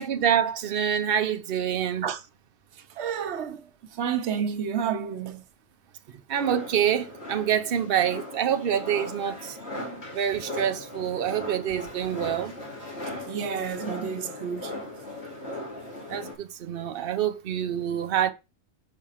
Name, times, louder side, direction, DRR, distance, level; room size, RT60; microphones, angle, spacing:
voice 1, 0.0-2.1 6.3-9.6 10.1-12.5 16.1-18.3, right 9 dB, 60° right, 0.9 m, -26 dB
voice 2, 3.0-3.6 3.9-5.4 9.9-10.0 13.3-14.7, right 7 dB, 85° right, 1.0 m, -30 dB
sound 1, 6.3-16.3, left 1 dB, 70° left, 2.9 m, -38 dB
5.6 x 4.8 x 5.6 m
omnidirectional pair, 1.1 m